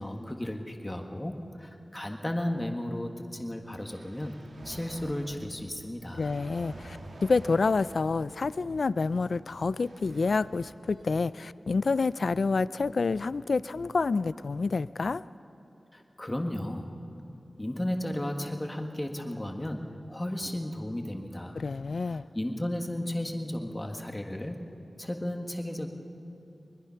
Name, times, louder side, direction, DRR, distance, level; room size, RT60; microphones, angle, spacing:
voice 1, 0.0-6.4 15.9-16.9 17.6-21.6 22.1-24.6 25.0-25.9, left 1 dB, 15° left, 4 dB, 1.6 m, -34 dB
sound 1, 3.6-11.3, right 1 dB, 75° right, 2.6 m, -49 dB
voice 2, 6.1-15.2 21.6-22.2, left 4 dB, 65° left, 17 dB, 0.4 m, -28 dB
21.5 x 21.5 x 5.8 m, 2.8 s
wide cardioid pair, 95°, 0 cm